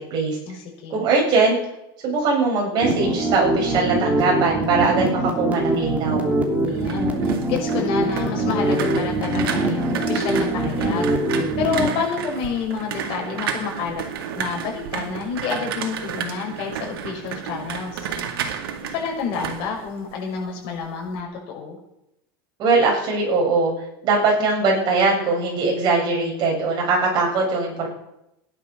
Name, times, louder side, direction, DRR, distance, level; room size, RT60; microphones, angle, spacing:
voice 1, 0.9-1.6 2.0-6.3 22.6-23.7 24.0-27.9, right 3 dB, 35° right, -1 dB, 7.4 m, -21 dB
sound 1, 2.8-11.9, right 2 dB, 10° right, 2.9 m, -23 dB
sound 2, 6.5-20.5 20.8-21.2, right 8 dB, 90° right, 2.2 m, -32 dB
voice 2, 6.6-11.1 11.6-14.0 14.3-18.1 18.9-21.8, left 5 dB, 50° left, 0 dB, 5.8 m, -29 dB
17.0 x 11.0 x 6.5 m, 0.83 s
supercardioid pair, 145°, 12 cm